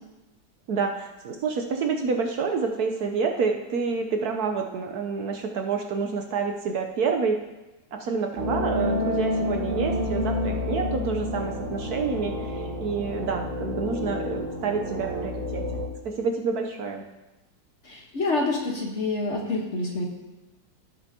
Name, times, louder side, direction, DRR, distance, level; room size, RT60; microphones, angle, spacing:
voice 1, 0.7-7.4 7.9-15.8 16.0-17.0, right 5 dB, 65° right, 4 dB, 1.1 m, -28 dB
sound 1, 8.4-15.9, left 1 dB, 40° right, 1.5 m, -29 dB
voice 2, 17.8-20.0, left 3 dB, 45° left, 0 dB, 1.4 m, -27 dB
16.5 x 6.9 x 2.8 m, 1.1 s
omnidirectional pair, 2.0 m